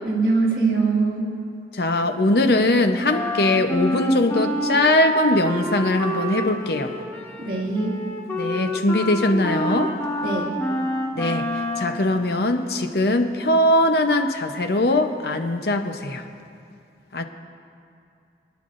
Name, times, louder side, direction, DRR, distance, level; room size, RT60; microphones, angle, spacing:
voice 1, 0.1-1.3 7.4-8.0 10.2-10.5, right 3 dB, 55° right, -3 dB, 2.0 m, -22 dB
voice 2, 1.7-7.0 8.4-10.0 11.1-16.2 17.1-17.2, left 1 dB, 65° left, 6 dB, 0.7 m, -21 dB
Wind instrument woodwind instrument, 3.1-12.1, equal, 15° left, 0.9 m, -27 dB
23.5 x 10.5 x 2.6 m, 2.6 s
head